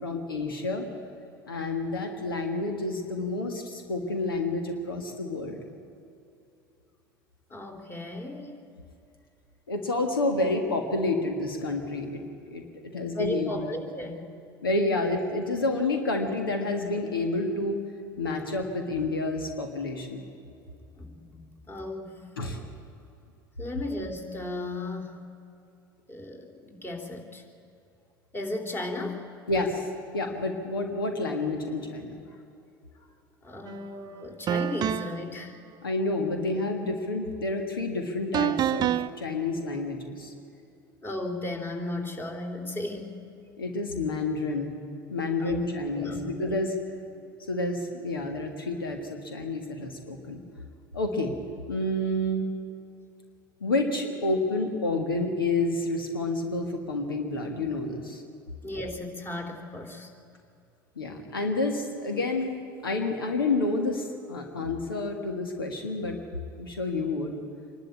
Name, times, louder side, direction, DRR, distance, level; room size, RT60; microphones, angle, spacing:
voice 1, 0.0-0.9 1.5-5.6 9.7-12.2 12.5-12.6 12.9-13.7 14.6-17.8 18.2-20.2 22.4-22.6 29.5-29.9 30.1-32.2 35.8-38.9 39.2-40.3 43.6-44.7 45.1-46.7 47.5-50.4 50.9-51.3 51.7-52.5 53.6-58.2 61.0-62.6 62.8-66.2 66.6-67.4, left 2 dB, 85° left, 4 dB, 1.8 m, -29 dB
voice 2, 7.5-8.6 13.1-14.2 21.0-22.2 23.6-25.2 26.1-27.4 28.3-29.3 33.4-35.5 41.0-43.2 45.4-45.6 45.9-46.6 58.6-60.1, left 2 dB, 20° left, 3 dB, 3.2 m, -35 dB
sound 1, 33.7-33.8 34.5-35.3 38.3-39.1, right 10 dB, 35° right, 0.6 m, -27 dB
25.5 x 12.0 x 8.5 m, 2.7 s
hypercardioid pair, 75°, 11 cm